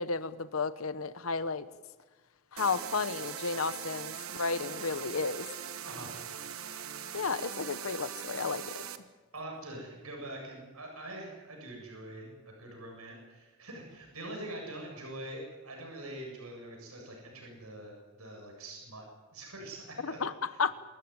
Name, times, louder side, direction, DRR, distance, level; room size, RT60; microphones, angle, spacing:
voice 1, 0.0-1.7 2.5-5.5 7.1-8.7 20.0-20.7, left 4 dB, 70° left, 14 dB, 0.9 m, -33 dB
sound 1, 2.6-9.0, right 8 dB, 70° right, 1.4 m, -41 dB
voice 2, 5.8-6.2 9.3-19.1 19.3-20.2, right 1 dB, 90° right, 0 dB, 7.9 m, -44 dB
27.5 x 14.0 x 9.7 m, 1.2 s
head